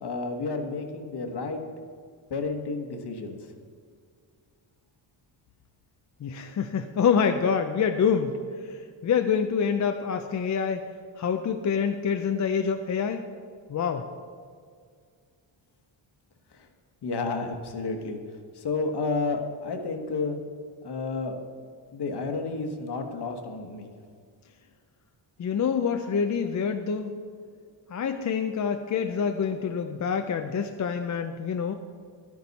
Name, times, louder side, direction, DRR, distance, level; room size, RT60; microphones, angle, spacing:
voice 1, 0.0-1.6 2.3-3.4 17.0-18.2 18.6-20.4 20.8-21.3 21.9-23.9, left 3 dB, 55° left, 5 dB, 1.3 m, -31 dB
voice 2, 6.2-10.9 11.2-13.3 13.7-14.1 25.4-27.1 27.9-31.7, left 6 dB, 40° left, 6 dB, 0.5 m, -26 dB
11.5 x 9.8 x 4.1 m, 2.1 s
cardioid pair, 125°, 49 cm